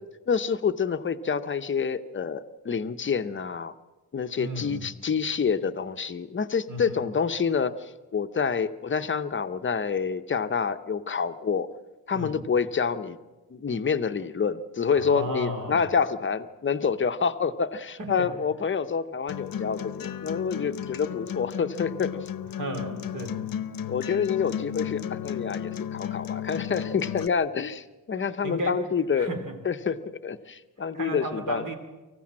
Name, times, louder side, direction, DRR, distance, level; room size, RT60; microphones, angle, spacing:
voice 1, 0.3-3.7 4.1-11.7 12.1-13.2 13.5-22.2 23.9-29.3 29.6-31.6, left 6 dB, 30° left, 10 dB, 0.8 m, -27 dB
voice 2, 4.4-4.9 6.7-7.0 12.1-12.4 14.9-15.9 18.0-18.3 22.6-23.4 28.2-28.8 29.1-29.6 30.9-31.8, right 1 dB, 55° right, 6 dB, 2.9 m, -34 dB
Acoustic guitar, 19.3-27.3, left 9 dB, 60° left, 0.8 m, -34 dB
24.5 x 15.0 x 7.5 m, 1.2 s
wide cardioid pair, 165°, 37 cm